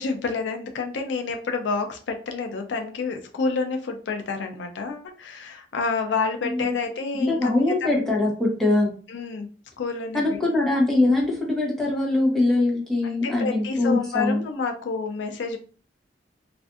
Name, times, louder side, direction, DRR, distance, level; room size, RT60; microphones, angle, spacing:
voice 1, 0.0-7.9 9.1-9.5 9.8-10.4 13.0-15.6, left 4 dB, 80° left, 5 dB, 0.4 m, -29 dB
voice 2, 6.4-6.8 7.1-8.9 10.1-14.4, left 2 dB, ahead, -4 dB, 0.8 m, -22 dB
2.5 x 2.4 x 2.3 m, 0.39 s
head